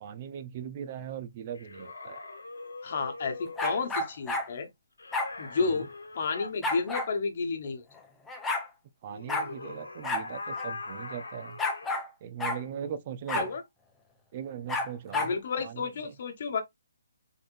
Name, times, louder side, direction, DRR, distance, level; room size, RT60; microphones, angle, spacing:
voice 1, 0.0-2.2 5.6-5.7 9.0-11.6 12.2-13.5 14.3-15.3 15.6-15.9, right 8 dB, 35° right, 0.5 m, -39 dB
sound 1, 1.6-4.0 5.0-6.5 9.1-12.0, left 3 dB, 80° left, 1.1 m, -42 dB
voice 2, 2.8-4.7 5.4-5.9 6.1-7.8 13.3-13.6 15.1-16.6, left 4 dB, 50° left, 1.0 m, -31 dB
sound 2, 3.6-4.5 5.1-5.3 6.6-7.1 8.0-8.1 8.3-8.7 9.3-9.5 10.0-10.3 10.6-10.7 11.6-12.1 12.4-12.6 13.3-13.5 14.7-15.3, left 2 dB, 10° left, 0.7 m, -30 dB
3.8 x 3.6 x 2.5 m
figure-of-eight pair, 145°, 0 cm